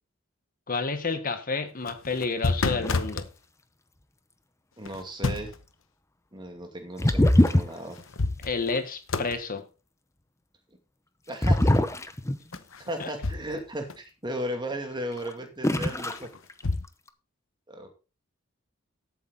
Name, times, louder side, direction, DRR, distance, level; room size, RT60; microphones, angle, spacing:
voice 1, 0.7-3.3 8.4-9.7 13.0-13.1, left 4 dB, 40° left, 9 dB, 1.3 m, -30 dB
sound 1, 1.7-3.3 4.8-5.7 7.5-7.6 7.9-8.8 9.1-9.4 12.5-13.6 13.9-14.0 15.9-16.9, left 3 dB, 70° left, 1.0 m, -30 dB
sound 2, 2.8-3.1 7.0-8.0 11.4-12.6 15.2-15.3 15.6-16.2 16.5-17.1, left 1 dB, 15° left, 0.8 m, -22 dB
voice 2, 4.8-5.6 6.3-8.0 11.3-11.7 12.8-16.3 17.7-17.9, equal, 20° right, 5 dB, 2.5 m, -35 dB
13.5 x 8.5 x 4.0 m, 0.32 s
head